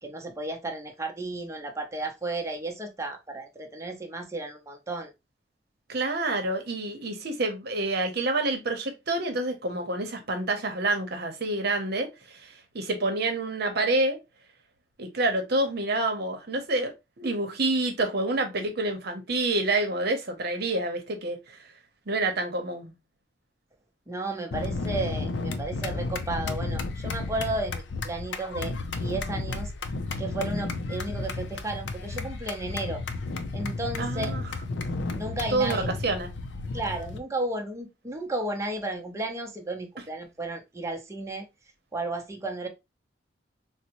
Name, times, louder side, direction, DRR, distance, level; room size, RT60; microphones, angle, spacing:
voice 1, 0.0-5.1 24.1-28.7 29.0-29.7 30.2-33.0 33.5-34.3 35.1-35.9 36.7-41.4 41.9-42.7, right 2 dB, 15° right, 0.6 m, -33 dB
voice 2, 5.9-14.2 15.0-21.6 22.1-22.9 34.0-34.4 35.5-36.3, right 2 dB, 60° right, 0.8 m, -28 dB
sound 1, 24.5-37.2, left 3 dB, 75° left, 0.5 m, -33 dB
3.9 x 2.1 x 2.9 m
head